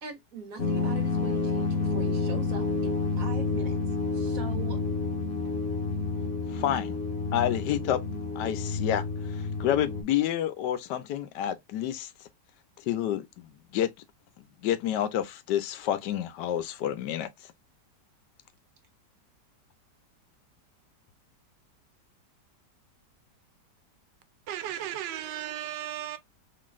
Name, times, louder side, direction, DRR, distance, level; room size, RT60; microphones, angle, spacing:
voice 1, 0.0-3.8 4.1-4.8, right 4 dB, 55° right, 1.4 m, -42 dB
sound 1, 0.6-10.0, left 4 dB, 45° left, 1.0 m, -29 dB
voice 2, 6.5-7.0 7.3-8.0 8.4-12.1 12.8-13.9 14.6-17.3, left 11 dB, 80° left, 1.2 m, -29 dB
voice 3, 24.5-26.2, right 11 dB, 80° right, 1.3 m, -35 dB
3.8 x 3.2 x 2.3 m
omnidirectional pair, 1.9 m